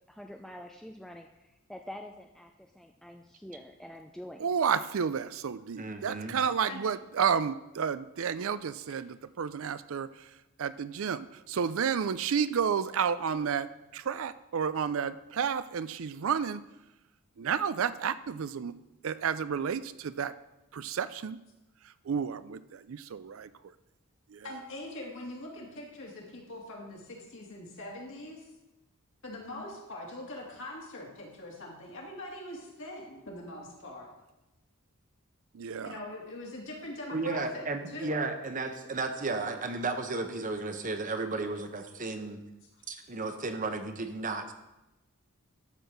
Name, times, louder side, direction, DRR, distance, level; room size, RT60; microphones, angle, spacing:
voice 1, 0.1-4.5, left 1 dB, ahead, 3 dB, 0.4 m, -46 dB
voice 2, 4.4-10.1 10.6-13.7 13.9-16.6 17.4-18.7 19.0-20.3 20.7-21.4 22.1-23.5 24.3-24.5 35.5-35.9, right 7 dB, 65° right, 14 dB, 0.4 m, -31 dB
voice 3, 5.8-6.4 37.1-42.4 42.9-44.5, right 3 dB, 35° right, 6 dB, 0.9 m, -34 dB
voice 4, 24.4-28.5 29.2-34.1 35.8-38.2, left 1 dB, 60° left, -2 dB, 2.6 m, -42 dB
12.5 x 4.5 x 6.7 m, 0.97 s
head